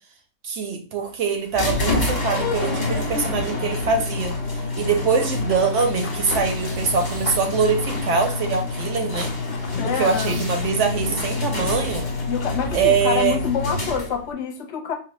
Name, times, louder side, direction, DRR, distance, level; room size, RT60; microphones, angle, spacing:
voice 1, 0.4-4.3 4.7-9.3 10.0-12.1 12.7-13.4, right 5 dB, 65° right, 0.8 m, -23 dB
sound 1, 1.5-14.3, left 2 dB, 35° left, 1.0 m, -27 dB
Run / Bird vocalization bird call bird song, 5.4-12.9, left 5 dB, 80° left, 0.4 m, -42 dB
sound 2, 6.5-7.8 9.9-10.8, right 6 dB, 80° right, 1.1 m, -42 dB
voice 2, 9.8-10.4 12.3-14.9, left 7 dB, 60° left, 0.9 m, -26 dB
4.6 x 2.1 x 3.0 m
omnidirectional pair, 1.5 m